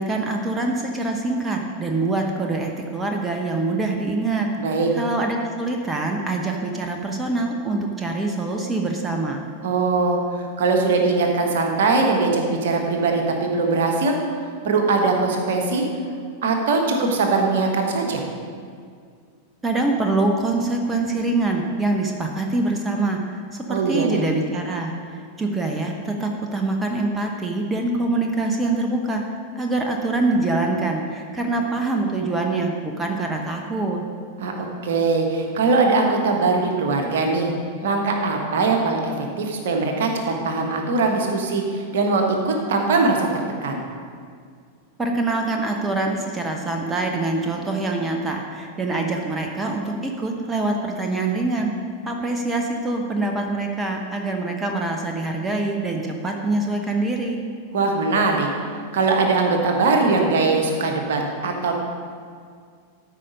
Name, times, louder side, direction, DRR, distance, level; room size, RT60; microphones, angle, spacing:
voice 1, 0.0-9.4 19.6-29.2 29.6-34.0 45.0-51.7 52.0-57.4, right 2 dB, 15° right, 2 dB, 0.8 m, -24 dB
voice 2, 4.6-4.9 9.6-14.2 14.6-15.9 16.4-18.3 23.7-24.2 34.4-37.5 37.8-43.3 43.6-43.8 57.7-58.5 58.9-61.7, right 3 dB, 55° right, 2 dB, 1.3 m, -21 dB
13.0 x 5.1 x 5.3 m, 2.1 s
figure-of-eight pair, 90°, 0 cm